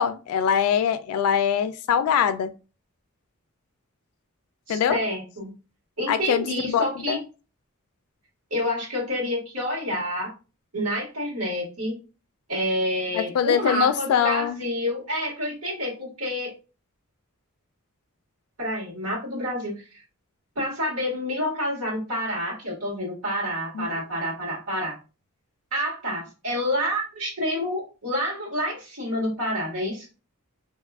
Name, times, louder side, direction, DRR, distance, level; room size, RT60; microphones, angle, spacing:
voice 1, 0.0-2.5 4.7-5.0 6.1-7.2 13.1-14.6 23.7-23.9, left 8 dB, 80° left, 0.3 m, -23 dB
voice 2, 4.7-5.5 6.0-7.2 8.5-10.3 10.7-12.0 12.5-16.5 18.6-20.0 20.6-24.9 25.7-30.1, equal, 80° right, 1.6 m, -28 dB
2.9 x 2.3 x 3.4 m
head